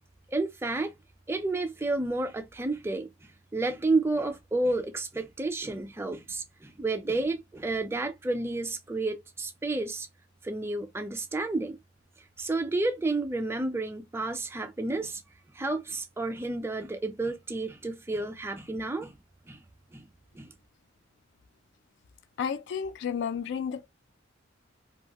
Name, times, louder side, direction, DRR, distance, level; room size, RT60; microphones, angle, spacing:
voice 1, 0.3-0.9 1.3-3.1 3.5-10.1 10.4-11.8 12.4-15.2 15.5-19.2 19.5-19.6 19.9-20.1 20.3-20.5, right 2 dB, 15° right, 0.4 m, -31 dB
voice 2, 22.4-23.9, left 7 dB, 60° left, 0.3 m, -32 dB
2.4 x 2.3 x 2.8 m
head